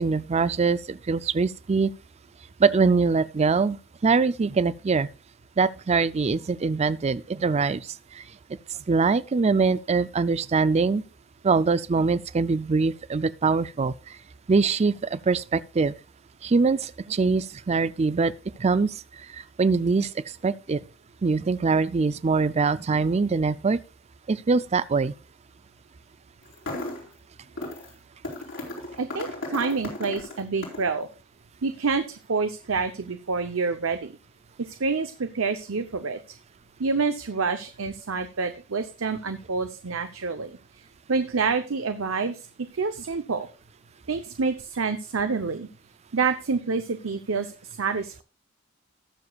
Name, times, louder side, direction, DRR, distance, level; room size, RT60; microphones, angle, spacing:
voice 1, 0.0-1.9 2.6-5.1 5.6-7.8 8.9-11.0 11.4-13.9 14.5-15.9 16.4-18.3 18.6-18.9 19.6-20.1 20.4-20.8 21.2-23.8 24.3-25.1, right 4 dB, 35° right, 0.4 m, -23 dB
sound 1, 26.4-27.1 27.6-27.9 28.2-30.9, left 2 dB, 75° left, 4.2 m, -35 dB
voice 2, 29.0-31.1 31.6-34.1 34.6-36.2 36.8-40.6 41.1-42.4 42.7-43.5 44.1-45.7 46.1-47.5 47.8-48.2, right 4 dB, 85° right, 0.8 m, -27 dB
19.0 x 6.9 x 2.4 m
head